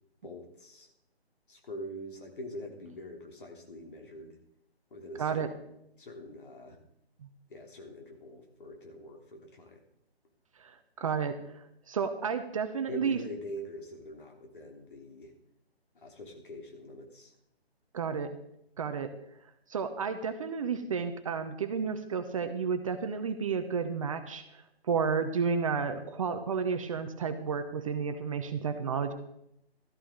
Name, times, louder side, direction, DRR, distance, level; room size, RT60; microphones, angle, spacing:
voice 1, 0.2-0.9 1.5-4.4 4.9-6.8 7.5-9.8 12.9-15.3 15.9-17.3, equal, 50° left, 2 dB, 3.4 m, -44 dB
voice 2, 5.2-5.5 10.6-11.4 11.9-13.2 17.9-18.4 18.8-19.1 19.7-29.1, right 6 dB, 30° right, 8 dB, 0.9 m, -31 dB
14.0 x 13.5 x 3.9 m, 0.77 s
figure-of-eight pair, 150°, 32 cm